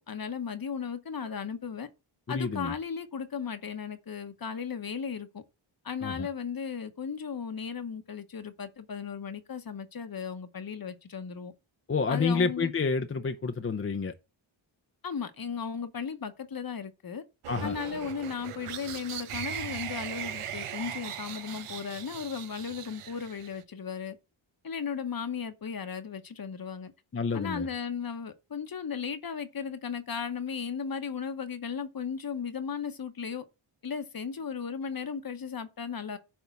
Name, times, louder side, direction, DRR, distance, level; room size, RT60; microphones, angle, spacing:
voice 1, 0.1-1.9 2.3-5.4 5.8-11.5 12.1-12.7 15.0-17.2 17.6-24.2 24.6-26.9 27.3-33.4 33.8-36.2, left 6 dB, 45° left, 1.0 m, -36 dB
voice 2, 2.3-2.7 6.0-6.3 11.9-14.1 17.5-17.8 27.1-27.7, left 4 dB, 30° left, 0.6 m, -29 dB
sound 1, 17.4-23.6, right 9 dB, 90° right, 0.9 m, -39 dB
10.5 x 3.6 x 6.9 m
wide cardioid pair, 115°, 49 cm